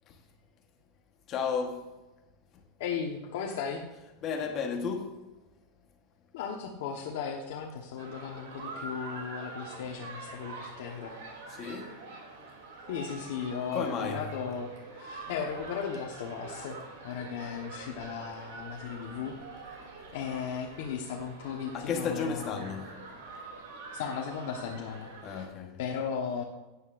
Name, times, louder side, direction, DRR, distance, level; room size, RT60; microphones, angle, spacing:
voice 1, 1.3-1.9 4.2-5.2 11.6-11.9 13.7-14.3 21.7-22.9 25.2-25.8, left 5 dB, 25° left, 1.1 m, -33 dB
voice 2, 2.8-3.8 6.3-11.1 12.9-16.8 17.0-19.3 20.1-22.6 23.9-25.4 25.8-26.4, left 6 dB, 60° left, 1.1 m, -36 dB
sound 1, 8.0-25.5, right 3 dB, 75° right, 2.8 m, -45 dB
13.0 x 9.5 x 2.5 m
supercardioid pair, 175°, 0 cm